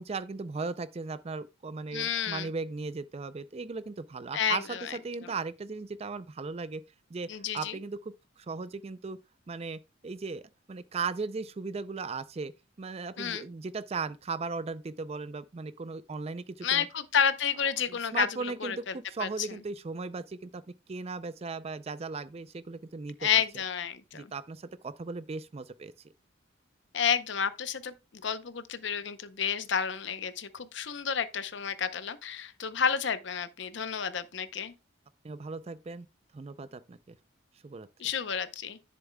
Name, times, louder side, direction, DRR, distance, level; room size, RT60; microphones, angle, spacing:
voice 1, 0.0-6.8 7.1-7.3 7.5-9.2 9.5-10.4 10.7-12.5 12.8-16.9 17.9-20.6 20.9-23.3 24.1-25.9 35.2-36.1 36.3-37.2 37.6-37.9, right 4 dB, 30° right, 0.4 m, -37 dB
voice 2, 1.9-2.5 4.3-5.0 7.3-7.8 13.2-13.5 16.6-19.5 23.2-24.3 26.9-34.7 38.0-38.8, left 7 dB, 60° left, 0.7 m, -31 dB
10.5 x 7.1 x 2.2 m
head